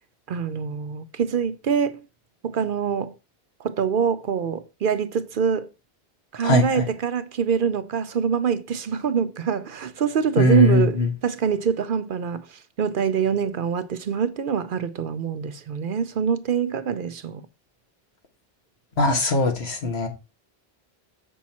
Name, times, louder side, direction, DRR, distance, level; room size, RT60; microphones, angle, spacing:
voice 1, 0.3-2.0 2.4-3.1 3.6-5.7 6.3-17.4, right 7 dB, 60° right, 0.7 m, -25 dB
voice 2, 6.4-6.8 10.4-11.1 19.0-20.1, left 3 dB, 85° left, 1.7 m, -20 dB
7.2 x 5.5 x 4.2 m
omnidirectional pair, 1.1 m